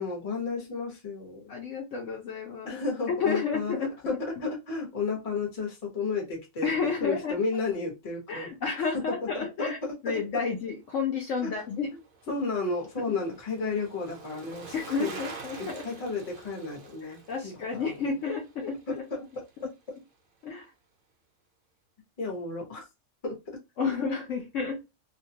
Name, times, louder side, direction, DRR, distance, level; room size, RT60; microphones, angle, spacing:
voice 1, 0.0-1.5 2.7-3.7 4.1-6.7 7.0-8.5 9.1-10.2 11.4-11.5 12.3-15.2 15.6-17.9 19.1-19.2 22.2-22.8 23.2-23.4, left 4 dB, 30° left, 1 dB, 0.8 m, -32 dB
voice 2, 1.5-2.8 3.1-4.2 6.6-7.4 8.3-9.8 10.0-11.9 14.7-15.9 17.0-19.0 20.4-20.7 23.8-24.8, left 5 dB, 65° left, 1 dB, 0.9 m, -31 dB
Bicycle, 11.2-19.7 20.0-20.1, right 4 dB, 65° right, 0.5 m, -47 dB
2.5 x 2.2 x 2.7 m, 0.25 s
omnidirectional pair, 1.5 m